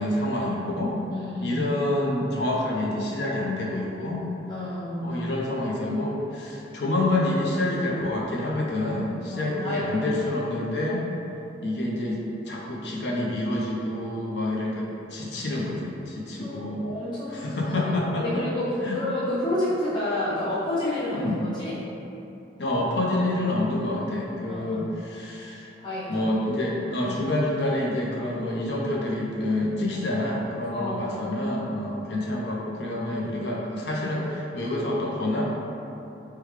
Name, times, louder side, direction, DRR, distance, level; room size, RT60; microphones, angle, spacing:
voice 1, 0.0-0.9 1.4-4.2 5.0-11.0 11.6-16.8 17.3-18.2 18.8-19.0 21.1-21.4 22.6-25.7 26.1-35.4, left 1 dB, 70° left, -3 dB, 0.6 m, -27 dB
voice 2, 1.1-1.6 4.5-5.3 9.3-10.1 16.4-17.5 17.8-17.9 18.2-21.8 23.7-23.8 24.5-24.9 25.8-26.3 30.7-31.1, left 1 dB, 25° left, -11 dB, 0.6 m, -29 dB
4.9 x 2.3 x 3.2 m, 2.9 s
head